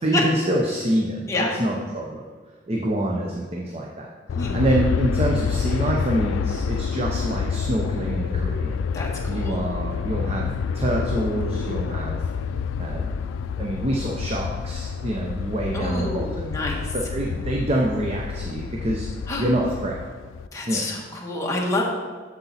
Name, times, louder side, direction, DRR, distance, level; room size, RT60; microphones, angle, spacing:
voice 1, 0.0-2.2 2.7-4.1 4.5-8.8 9.3-10.5 10.7-12.2 12.8-13.1 13.6-19.1 19.4-20.0 20.7-20.9, right 1 dB, 30° right, -1 dB, 0.7 m, -26 dB
Aircraft, 4.3-20.5, left 6 dB, 85° left, 0.3 m, -28 dB
voice 2, 8.9-9.6 15.7-16.8 19.3-19.4 20.5-21.8, left 2 dB, 15° left, -3 dB, 1.5 m, -27 dB
7.9 x 7.1 x 4.2 m, 1.5 s
head